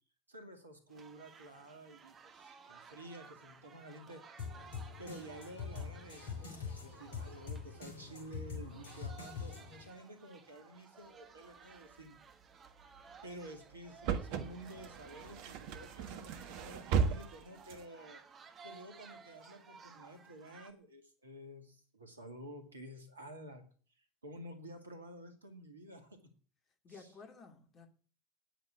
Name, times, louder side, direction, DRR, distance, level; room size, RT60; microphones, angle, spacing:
voice 1, 0.3-4.2 5.0-12.2 13.2-18.2 18.6-23.6 24.0-26.3 26.9-27.1, right 1 dB, 85° right, 2.3 m, -51 dB
sound 1, 0.9-20.7, right 5 dB, 35° right, 1.9 m, -57 dB
sound 2, 4.4-9.9, left 6 dB, 70° left, 4.0 m, -44 dB
sound 3, 12.7-13.0 13.7-13.8 14.0-17.8, right 6 dB, 60° right, 1.5 m, -36 dB
voice 2, 16.2-16.6 26.8-27.9, left 4 dB, 40° left, 2.9 m, -55 dB
10.0 x 9.2 x 8.4 m
figure-of-eight pair, 70°, 0 cm